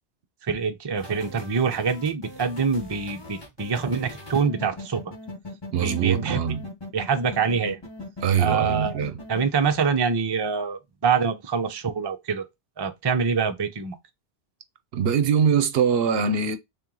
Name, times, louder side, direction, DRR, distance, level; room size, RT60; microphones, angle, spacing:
voice 1, 0.4-5.0 5.7-6.4 6.9-7.8 8.4-12.4 12.8-14.0, right 5 dB, 30° right, 0.5 m, -25 dB
sound 1, 1.0-9.4, left 2 dB, 25° left, 1.1 m, -40 dB
voice 2, 5.7-6.6 8.2-9.2 14.9-16.6, right 7 dB, 70° right, 0.8 m, -22 dB
3.3 x 3.0 x 3.8 m
omnidirectional pair, 1.1 m